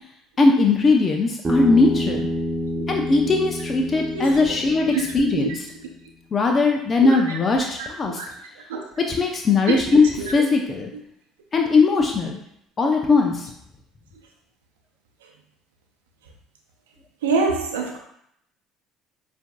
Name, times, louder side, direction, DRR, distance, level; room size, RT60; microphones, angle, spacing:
voice 1, 0.4-2.3 2.9-5.7 6.3-8.1 9.1-10.9 11.5-12.4 12.8-13.5, left 3 dB, 40° left, 2 dB, 0.6 m, -19 dB
Bass guitar, 1.4-5.8, equal, 20° right, 1.2 m, -28 dB
voice 2, 4.1-4.5 4.9-5.0 5.3-5.5 7.0-7.2 7.8-7.9 8.2-8.3 8.7-8.8 9.7-9.8 10.2-10.3 17.2-18.0, right 4 dB, 85° right, 2 dB, 0.6 m, -25 dB
6.9 x 2.6 x 2.3 m, 0.73 s
hypercardioid pair, 60°, 0 cm